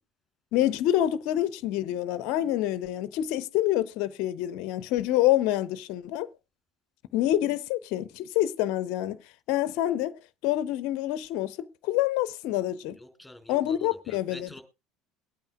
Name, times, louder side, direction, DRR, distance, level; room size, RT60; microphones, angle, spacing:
voice 1, 0.5-6.3 7.1-9.2 9.5-13.0 13.5-14.6, left 13 dB, 60° left, 0.6 m, -27 dB
voice 2, 13.0-14.6, left 1 dB, 5° left, 4.0 m, -47 dB
22.5 x 8.9 x 2.3 m
figure-of-eight pair, 65°, 0 cm